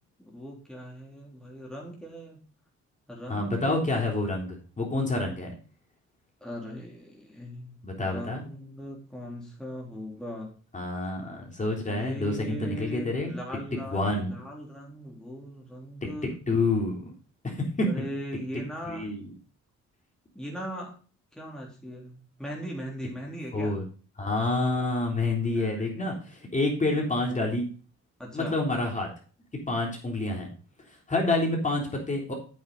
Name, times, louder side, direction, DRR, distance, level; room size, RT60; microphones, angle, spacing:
voice 1, 0.2-2.4 3.1-3.7 6.4-10.5 11.8-16.3 17.8-19.2 20.4-21.0 21.3-23.7 25.6-26.2 28.2-28.6, equal, ahead, -2 dB, 3.5 m, -39 dB
voice 2, 3.3-5.5 7.8-8.4 10.7-13.3 13.9-14.3 16.0-17.1 17.4-17.9 18.5-19.3 23.5-23.8 24.2-27.7 28.3-29.1 29.7-30.5 31.1-32.3, left 2 dB, 25° left, -1 dB, 3.6 m, -28 dB
9.1 x 7.9 x 4.0 m, 0.39 s
cardioid pair, 90°, 30 cm